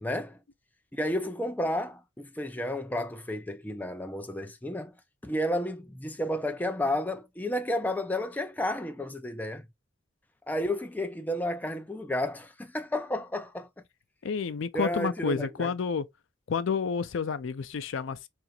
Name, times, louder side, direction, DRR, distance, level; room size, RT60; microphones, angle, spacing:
voice 1, 0.0-0.4 0.9-4.9 5.2-9.7 10.5-13.7 14.7-15.7, left 1 dB, 10° left, 0.3 m, -32 dB
voice 2, 14.2-16.1 16.5-18.3, left 6 dB, 80° left, 0.4 m, -30 dB
4.7 x 2.5 x 2.7 m
head